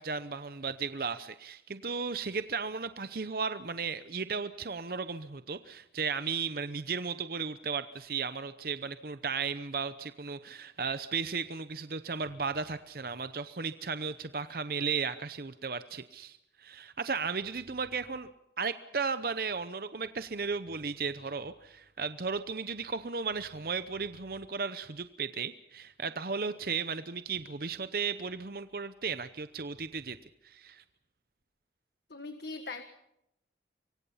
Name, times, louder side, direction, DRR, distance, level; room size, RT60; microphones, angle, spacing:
voice 1, 0.0-18.3 18.6-30.2 30.4-30.8, right 5 dB, 55° right, 12 dB, 0.8 m, -35 dB
voice 2, 32.1-32.8, left 3 dB, 70° left, 8 dB, 1.6 m, -40 dB
25.0 x 23.5 x 5.7 m, 0.82 s
head